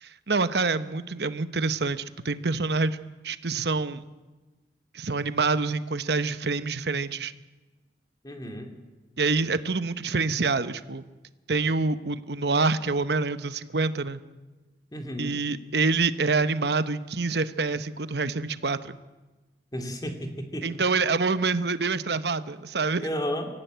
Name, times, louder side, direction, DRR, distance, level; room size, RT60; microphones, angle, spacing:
voice 1, 0.0-3.0 3.2-4.0 4.9-7.3 9.2-11.0 11.5-14.2 15.2-18.9 20.6-23.1, right 4 dB, 70° right, 13 dB, 1.0 m, -26 dB
voice 2, 8.2-8.7 14.9-15.3 19.7-20.7 23.0-23.5, equal, 20° left, 5 dB, 2.6 m, -32 dB
24.5 x 15.0 x 9.1 m, 1.2 s
head